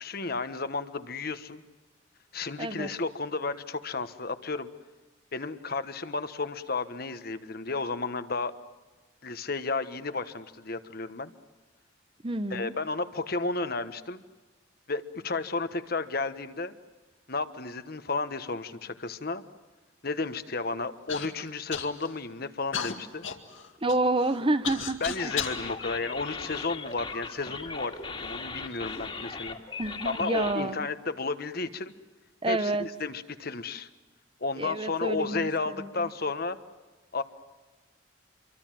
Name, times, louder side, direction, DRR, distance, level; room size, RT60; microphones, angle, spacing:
voice 1, 0.0-1.6 2.3-4.7 5.3-8.5 9.2-11.3 12.5-14.2 14.9-16.7 17.3-19.4 20.0-23.2 25.0-29.6 30.0-31.9 32.5-33.9 34.4-36.6 37.1-37.2, left 3 dB, 50° left, 11 dB, 1.3 m, -32 dB
voice 2, 2.6-2.9 12.2-12.7 23.8-25.3 29.8-30.8 32.4-32.8 34.6-36.1, right 2 dB, 25° right, 12 dB, 0.9 m, -29 dB
Human voice / Cough, 21.1-21.3 21.7-22.2 22.7-25.6 26.3-27.1 27.9-28.0 28.7-29.0, left 8 dB, 75° left, 2.2 m, -36 dB
sound 1, 25.2-30.5, left 4 dB, 25° left, 2.3 m, -38 dB
27.0 x 24.0 x 7.6 m, 1.2 s
head